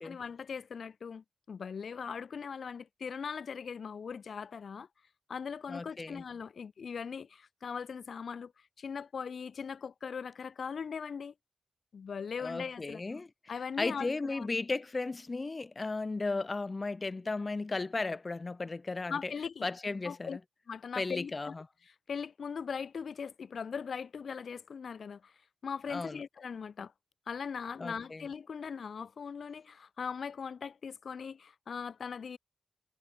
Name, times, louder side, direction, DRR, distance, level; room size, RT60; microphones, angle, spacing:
voice 1, 0.0-4.9 5.3-11.3 11.9-13.0 13.5-14.5 19.1-19.7 20.0-20.4 20.7-21.5 21.9-26.9 27.3-32.4, left 6 dB, 70° left, 4.2 m, -40 dB
voice 2, 5.7-6.2 12.4-13.3 13.8-19.3 19.6-20.4 21.0-21.6 25.9-26.2 27.8-28.2, left 3 dB, 40° left, 1.6 m, -35 dB
cardioid pair, 60°, 0 cm